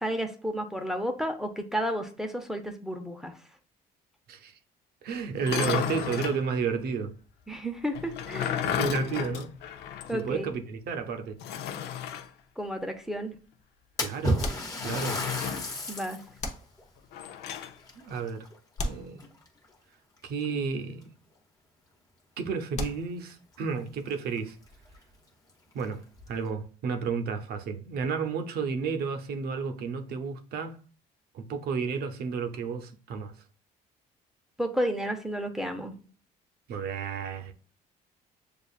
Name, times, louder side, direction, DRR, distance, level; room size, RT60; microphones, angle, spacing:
voice 1, 0.0-3.3 7.5-8.6 10.1-10.5 12.6-13.4 15.9-16.2 34.6-36.0, equal, 5° right, 0.6 m, -32 dB
voice 2, 5.0-7.1 8.6-9.5 10.1-11.4 14.0-14.5 14.8-15.2 17.9-18.5 18.8-19.3 20.2-21.1 22.4-24.6 25.7-30.8 31.3-33.3 36.7-37.5, right 5 dB, 65° right, 0.7 m, -32 dB
sound 1, 5.3-6.4 7.9-10.2 10.5-10.6 11.4-12.3 14.8-15.8 17.1-17.7, left 9 dB, 75° left, 0.6 m, -33 dB
sound 2, 12.6-13.2 14.4-15.4 16.4-17.2 18.8-19.8 22.7-23.6, left 1 dB, 40° left, 0.8 m, -38 dB
Splash splatter, 14.0-16.3 16.8-16.9 17.8-18.8 19.2-19.6 20.4-20.5 21.0-21.1 23.3-23.4 23.7-23.8 24.4-24.5 24.9-25.0 25.7-26.3, equal, 20° left, 1.1 m, -32 dB
6.7 x 2.4 x 2.4 m
cardioid pair, 110°, 17 cm